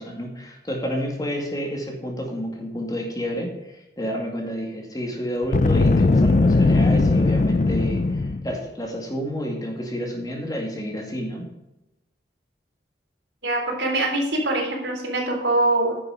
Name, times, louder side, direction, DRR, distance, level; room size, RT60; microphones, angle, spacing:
voice 1, 0.0-11.4, equal, 20° left, 1 dB, 2.2 m, -30 dB
Boom, 5.4-8.6, left 3 dB, 40° left, 0.4 m, -19 dB
voice 2, 13.4-16.0, right 2 dB, 85° right, 0 dB, 3.5 m, -23 dB
10.5 x 6.7 x 5.0 m, 0.91 s
head